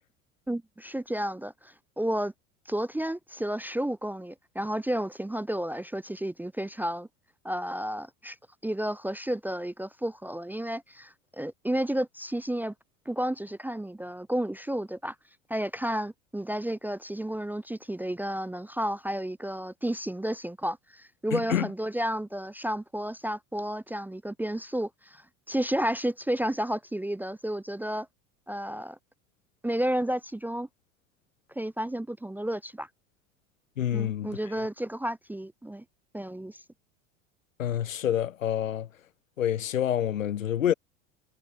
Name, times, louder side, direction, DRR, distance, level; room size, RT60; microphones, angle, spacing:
voice 1, 0.5-2.3 2.7-7.1 7.4-8.4 8.6-12.7 13.1-15.2 15.5-28.1 28.5-29.0 29.6-30.7 31.6-32.9 33.9-35.8 36.1-36.6, right 1 dB, 5° right, 0.6 m, -32 dB
voice 2, 21.3-21.7 33.8-34.4 37.6-38.9 39.4-40.7, left 10 dB, 90° left, 2.2 m, -27 dB
hypercardioid pair, 85°, 38 cm